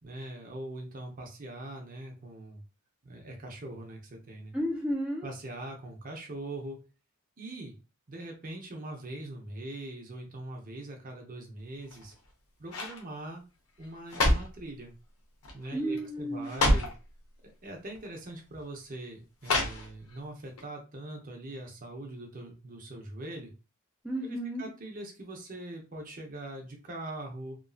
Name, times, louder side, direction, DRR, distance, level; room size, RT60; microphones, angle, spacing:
voice 1, 0.0-2.6 3.0-4.6 5.2-6.8 7.4-7.7 8.1-12.1 12.6-13.4 13.8-14.9 15.5-16.9 17.4-23.5 24.6-27.6, right 1 dB, 40° right, 1 dB, 0.7 m, -42 dB
voice 2, 4.5-5.3 15.7-16.6 24.0-24.7, equal, 5° right, -3 dB, 0.4 m, -32 dB
sound 1, 11.8-12.3 12.7-13.0 13.8-14.6 15.4-15.7 16.0-16.1 16.4-17.0 17.9-18.1 19.4-20.2 20.6-20.7, left 1 dB, 80° left, 0.9 m, -28 dB
3.0 x 2.6 x 2.4 m, 0.32 s
head